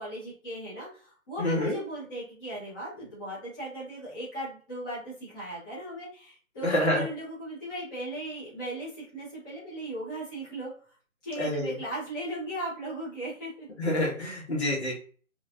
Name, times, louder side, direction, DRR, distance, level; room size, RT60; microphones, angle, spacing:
voice 1, 0.0-10.7 11.2-13.7, right 1 dB, 15° left, -11 dB, 1.2 m, -37 dB
voice 2, 1.4-1.8 6.6-7.0 11.4-11.8 13.8-14.9, left 1 dB, 50° left, -4 dB, 1.8 m, -27 dB
4.9 x 2.6 x 2.6 m, 0.41 s
figure-of-eight pair, 150°, 41 cm